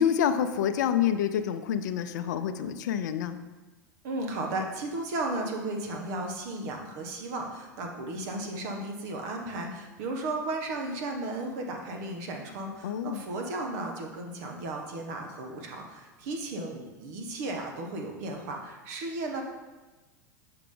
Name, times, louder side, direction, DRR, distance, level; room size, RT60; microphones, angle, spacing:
voice 1, 0.0-3.4 12.8-13.2, left 9 dB, 70° left, 10 dB, 0.5 m, -27 dB
voice 2, 4.0-19.4, right 2 dB, 65° right, 2 dB, 1.3 m, -35 dB
6.9 x 4.8 x 3.8 m, 1.2 s
hypercardioid pair, 95°, 10 cm